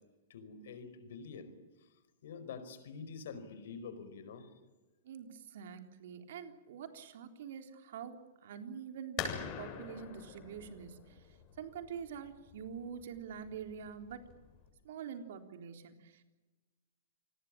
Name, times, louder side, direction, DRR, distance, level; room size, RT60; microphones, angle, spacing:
voice 1, 0.3-1.6 2.2-4.5, left 5 dB, 65° left, 12 dB, 4.7 m, -46 dB
voice 2, 5.0-9.3 9.6-11.2 11.6-14.2 14.8-16.2, right 7 dB, 60° right, 6 dB, 3.7 m, -46 dB
sound 1, 9.2-14.7, left 7 dB, 40° left, 6.9 m, -45 dB
28.0 x 20.5 x 8.7 m, 1.2 s
figure-of-eight pair, 105°, 0 cm